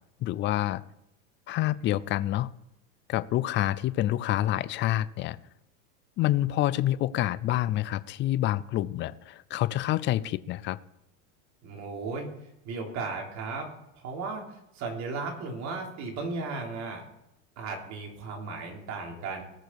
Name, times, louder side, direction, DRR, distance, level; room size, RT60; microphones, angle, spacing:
voice 1, 0.2-0.8 1.5-2.5 3.1-5.4 6.2-10.8, left 14 dB, 30° left, 17 dB, 0.5 m, -27 dB
voice 2, 11.6-12.3 12.6-13.7 13.9-17.0 17.6-19.4, right 4 dB, 45° right, 0 dB, 3.6 m, -35 dB
19.0 x 6.9 x 4.8 m, 0.83 s
supercardioid pair, 125°, 40 cm